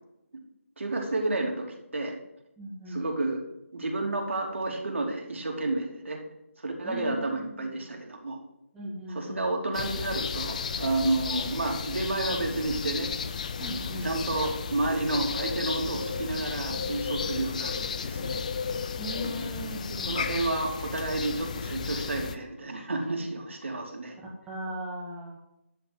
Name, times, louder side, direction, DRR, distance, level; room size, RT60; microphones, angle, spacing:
voice 1, 0.8-1.7 1.9-2.2 2.9-3.4 3.7-6.2 6.6-8.4 9.1-13.1 13.6-18.4 19.2-24.2, right 2 dB, 60° right, 1 dB, 3.0 m, -31 dB
voice 2, 2.6-3.0 6.8-7.9 8.7-9.5 13.6-14.1 19.0-20.2 24.5-25.4, equal, 5° right, -5 dB, 1.7 m, -38 dB
sound 1, 9.7-22.3, left 6 dB, 30° left, 0.6 m, -33 dB
13.0 x 5.1 x 7.8 m, 0.85 s
figure-of-eight pair, 155°, 8 cm